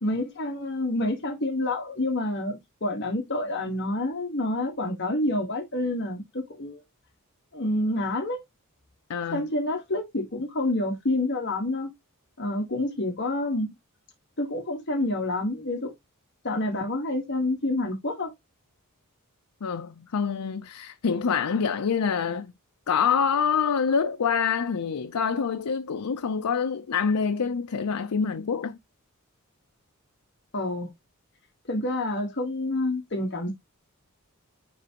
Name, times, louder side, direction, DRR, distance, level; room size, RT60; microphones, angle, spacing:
voice 1, 0.0-6.8 7.5-8.4 9.3-11.9 12.4-13.7 14.4-15.9 16.4-18.3 30.5-30.9 31.7-33.5, left 1 dB, 55° left, 1.4 m, -28 dB
voice 2, 9.1-9.5 19.6-22.5 22.9-28.8, left 6 dB, 90° left, 0.5 m, -26 dB
10.0 x 3.4 x 2.9 m
head